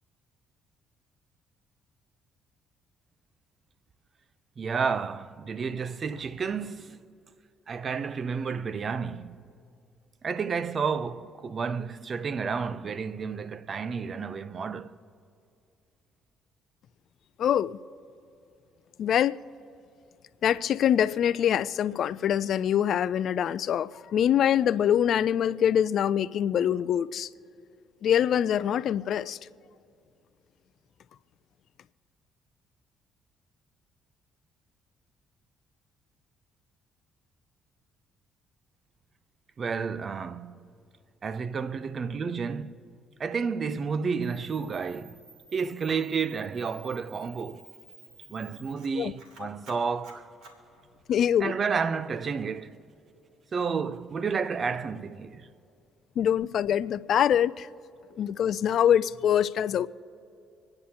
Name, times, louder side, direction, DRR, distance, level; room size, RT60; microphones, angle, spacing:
voice 1, 4.6-7.0 7.7-9.4 10.2-15.0 39.6-40.6 41.2-42.8 43.2-45.2 45.5-47.7 48.3-50.3 51.4-52.8 53.5-55.5, right 5 dB, 45° right, 0.6 m, -31 dB
voice 2, 17.4-17.8 19.0-19.4 20.4-27.3 28.0-29.4 49.0-49.1 49.4-49.5 51.1-51.5 56.2-57.7 58.2-59.9, left 9 dB, 60° left, 0.4 m, -24 dB
Camera, 44.2-51.4, right 3 dB, 75° right, 2.6 m, -54 dB
27.0 x 9.8 x 2.9 m
hypercardioid pair, 55°, 0 cm